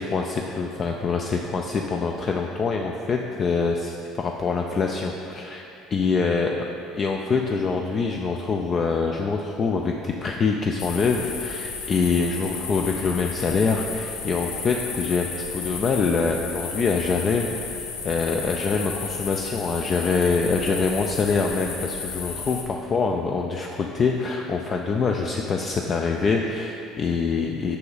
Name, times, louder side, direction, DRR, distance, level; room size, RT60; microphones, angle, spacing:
voice 1, 0.0-5.7 5.9-6.5 6.9-27.8, left 4 dB, 40° left, 2 dB, 0.4 m, -25 dB
sound 1, 10.8-22.6, left 5 dB, 85° left, 0.6 m, -34 dB
5.5 x 5.3 x 4.0 m, 2.6 s
supercardioid pair, 90°, 0 cm